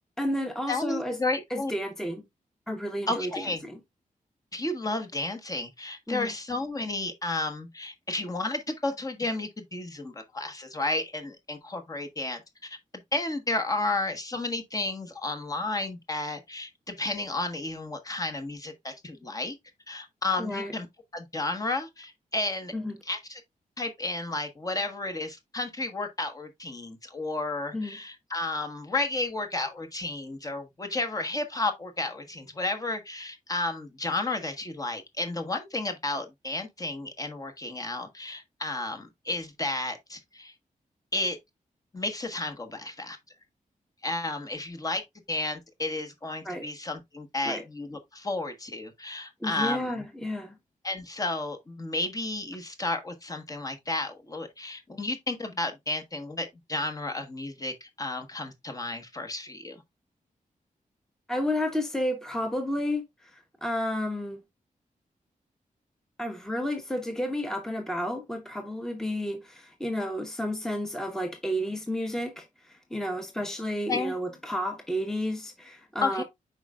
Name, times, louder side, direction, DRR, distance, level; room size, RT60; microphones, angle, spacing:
voice 1, 0.2-1.2 1.5-2.2 2.7-3.8 6.1-6.3 20.4-20.7 22.7-23.0 27.7-28.0 46.4-46.7 47.4-47.6 49.4-50.6 61.3-64.4 66.2-76.2, equal, 5° left, 1.0 m, -31 dB
voice 2, 0.7-1.7 3.1-3.6 4.5-12.8 13.1-19.6 19.9-20.9 21.1-22.7 23.0-23.4 23.8-40.5 41.1-41.4 41.9-43.2 44.0-45.0 45.3-50.0 50.8-59.8 73.9-74.2 76.0-76.2, left 2 dB, 25° left, 1.2 m, -32 dB
8.0 x 5.2 x 2.3 m
wide cardioid pair, 175°, 14 cm